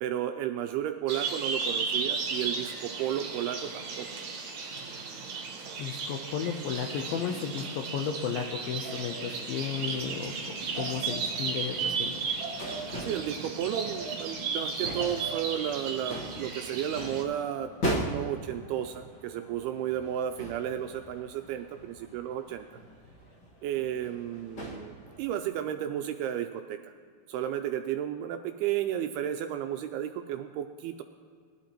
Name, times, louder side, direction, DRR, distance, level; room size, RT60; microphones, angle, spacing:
voice 1, 0.0-4.1 13.0-22.7 23.6-26.9 27.3-31.0, right 10 dB, 85° right, 6 dB, 2.3 m, -33 dB
sound 1, 1.1-17.2, right 5 dB, 60° right, 2.2 m, -35 dB
voice 2, 5.8-12.3, left 7 dB, 80° left, 4 dB, 2.2 m, -34 dB
sound 2, 9.9-25.5, equal, 60° left, 1.1 m, -41 dB
19.5 x 11.0 x 3.0 m, 2.1 s
omnidirectional pair, 4.9 m